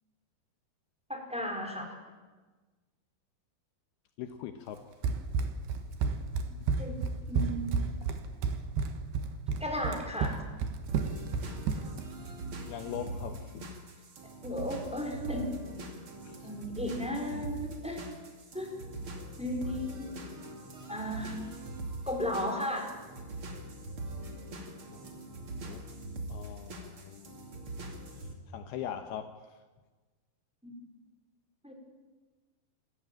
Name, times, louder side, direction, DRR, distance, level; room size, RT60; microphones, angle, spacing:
voice 1, 1.1-1.8 6.8-7.0 7.3-7.8 9.6-10.4 14.4-15.5 16.4-18.0 18.5-18.7 19.4-20.1 20.9-21.3 22.1-22.9 30.6-30.8 31.6-31.7, equal, ahead, 1 dB, 4.1 m, -34 dB
voice 2, 4.2-4.9 12.7-13.7 16.2-16.5 24.9-25.0 25.4-25.8 26.3-27.5 28.1-29.5, left 9 dB, 75° left, 8 dB, 2.8 m, -42 dB
Run, 5.0-12.1, right 5 dB, 75° right, 3.4 m, -31 dB
sound 1, 10.9-28.3, right 2 dB, 35° right, 2.9 m, -42 dB
27.5 x 15.0 x 9.0 m, 1.3 s
omnidirectional pair, 4.8 m